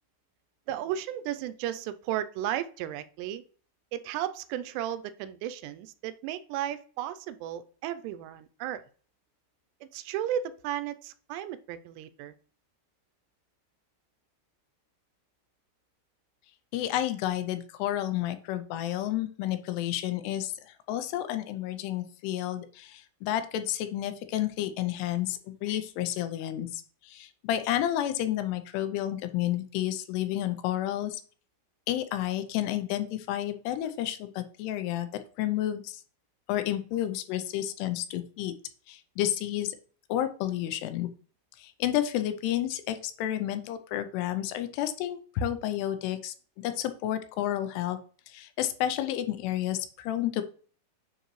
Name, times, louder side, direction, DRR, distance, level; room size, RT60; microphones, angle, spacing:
voice 1, 0.7-3.4 3.9-8.8 9.9-12.3, right 11 dB, 90° right, 13 dB, 2.7 m, -34 dB
voice 2, 16.7-31.2 31.9-35.1 35.4-36.0 36.5-38.5 38.9-39.8 40.1-41.1 41.6-48.0 48.3-50.4, left 12 dB, 85° left, 9 dB, 2.6 m, -31 dB
9.2 x 3.9 x 3.1 m, 0.43 s
omnidirectional pair, 4.8 m